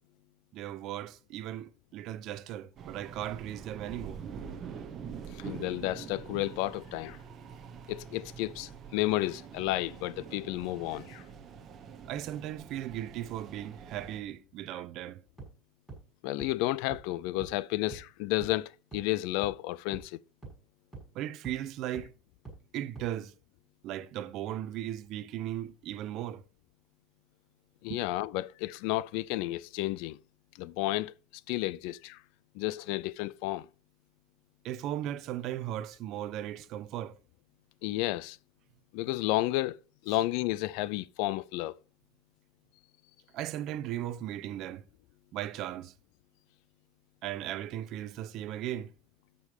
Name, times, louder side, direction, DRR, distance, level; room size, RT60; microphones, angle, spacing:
voice 1, 0.5-4.2 12.1-15.2 21.1-22.1 22.7-23.3 23.8-26.4 27.9-28.0 34.6-37.2 43.3-44.8 45.3-45.9 47.2-48.9, right 12 dB, 40° right, 0.7 m, -37 dB
sound 1, 2.8-14.2, right 7 dB, 25° right, 1.2 m, -45 dB
voice 2, 5.3-7.2 7.9-11.2 16.2-20.2 27.8-30.2 30.6-31.1 31.5-32.2 32.5-33.7 37.8-38.4 38.9-39.8 40.0-41.8, left 17 dB, 60° left, 0.4 m, -32 dB
sound 2, 15.4-15.5 15.9-16.0 16.4-16.5 16.9-17.0 17.4-17.5 17.9-18.0 18.4-18.5 18.9-19.0 19.4-19.5 19.9-20.0 20.4-20.5 20.9-21.0 21.4-21.5 21.9-22.0 22.4-22.5 22.9-23.0, right 4 dB, 5° right, 6.3 m, -44 dB
13.0 x 5.4 x 5.0 m
cardioid pair, 170°, 0 cm